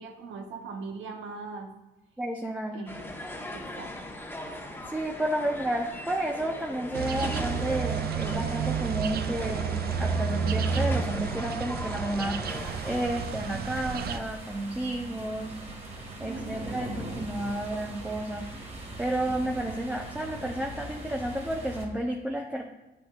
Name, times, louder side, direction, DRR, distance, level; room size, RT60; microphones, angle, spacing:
voice 1, 0.0-1.7 2.7-3.1 3.5-4.2 16.2-16.7, right 4 dB, 75° right, 4 dB, 1.1 m, -40 dB
voice 2, 2.2-2.8 4.9-12.4 12.8-15.5 16.2-18.4 19.0-22.6, right 1 dB, 5° right, 0 dB, 0.7 m, -31 dB
sound 1, 2.9-13.1, left 1 dB, 10° left, 1.2 m, -39 dB
sound 2, 6.9-14.2, right 6 dB, 50° right, 0.4 m, -31 dB
sound 3, 12.4-21.9, right 1 dB, 35° right, 1.8 m, -40 dB
9.2 x 6.1 x 2.4 m, 1.0 s
cardioid pair, 90°, 20 cm